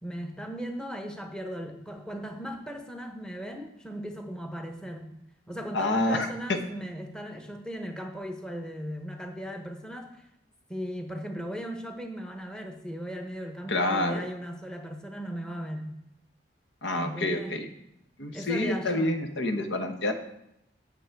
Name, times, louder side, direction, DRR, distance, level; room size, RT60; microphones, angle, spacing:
voice 1, 0.0-5.1 5.5-10.2 10.7-15.9 17.0-17.6 18.3-19.2, equal, 5° left, 4 dB, 0.9 m, -37 dB
voice 2, 5.7-6.6 13.7-14.2 16.8-17.7 18.2-20.1, left 2 dB, 85° left, 6 dB, 1.0 m, -28 dB
9.2 x 7.3 x 4.6 m, 0.82 s
head